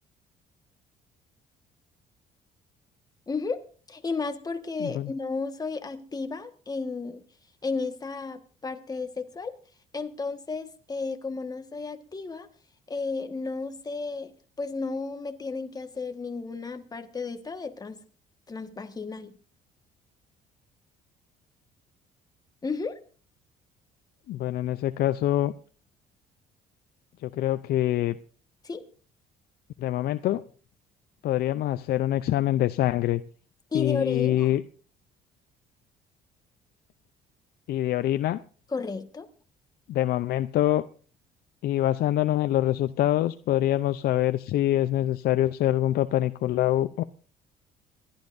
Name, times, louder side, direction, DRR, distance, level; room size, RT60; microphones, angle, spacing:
voice 1, 3.3-3.6 3.9-7.2 7.6-9.5 9.9-12.5 12.9-14.3 14.6-18.0 18.5-19.3 22.6-23.0 28.6-28.9 33.7-34.5 38.7-39.3, left 4 dB, 20° left, 1.5 m, -33 dB
voice 2, 4.8-5.1 24.3-25.5 27.2-28.2 29.8-30.4 31.2-33.2 33.7-34.6 37.7-38.4 39.9-40.9 41.6-47.0, left 13 dB, 65° left, 0.6 m, -25 dB
27.5 x 12.0 x 2.6 m
cardioid pair, 110°, 17 cm